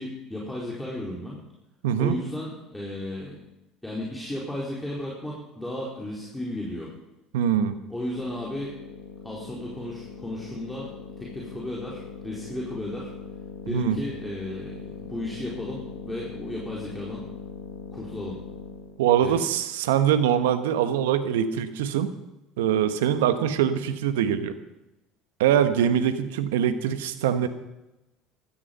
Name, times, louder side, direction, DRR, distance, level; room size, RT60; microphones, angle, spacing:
voice 1, 0.0-1.4 2.0-3.3 3.8-6.9 7.9-8.7 9.2-13.1 13.6-17.2 17.9-18.4 19.2-19.4, left 1 dB, 5° left, -5 dB, 4.5 m, -34 dB
voice 2, 1.8-2.1 7.3-7.7 13.7-14.0 19.0-22.1 22.6-24.6 25.4-27.5, right 9 dB, 75° right, 10 dB, 1.2 m, -23 dB
sound 1, 7.8-19.0, left 6 dB, 80° left, 1.8 m, -41 dB
16.0 x 13.5 x 5.5 m, 0.95 s
hypercardioid pair, 65°, 0 cm